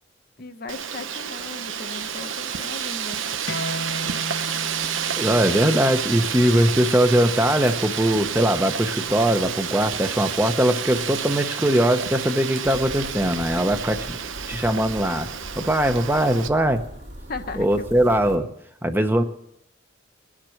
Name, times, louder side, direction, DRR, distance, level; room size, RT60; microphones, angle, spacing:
voice 1, 0.4-3.3 17.3-18.5, left 3 dB, 50° left, 7 dB, 1.1 m, -37 dB
Wind, 0.7-16.5, right 8 dB, 90° right, 0.9 m, -30 dB
sound 1, 3.5-8.6, left 1 dB, 80° left, 1.2 m, -37 dB
voice 2, 5.2-14.2 14.5-15.3 15.5-16.8 17.6-18.5 18.8-19.2, right 1 dB, 10° right, 7 dB, 0.9 m, -21 dB
sound 2, 12.6-18.4, equal, 55° right, 2.6 m, -40 dB
21.0 x 7.5 x 6.4 m, 0.73 s
head